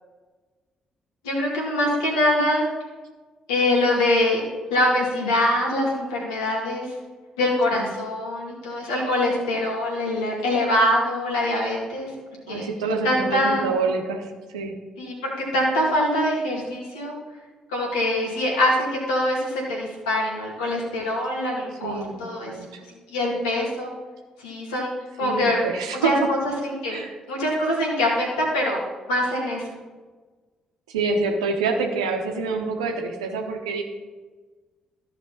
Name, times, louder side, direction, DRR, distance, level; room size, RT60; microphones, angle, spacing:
voice 1, 1.2-2.7 3.5-4.4 4.7-6.9 7.4-12.1 12.5-12.7 13.0-13.7 15.0-17.2 17.7-22.5 23.1-24.0 24.4-25.6 26.0-27.0 27.3-28.8 29.1-29.8, left 1 dB, 80° left, -2 dB, 2.2 m, -24 dB
voice 2, 12.5-14.2 14.5-14.7 21.8-22.7 25.2-26.1 26.9-27.1 30.9-33.8, right 4 dB, 80° right, 3 dB, 1.0 m, -26 dB
13.5 x 5.3 x 4.1 m, 1.3 s
figure-of-eight pair, 45°, 3 cm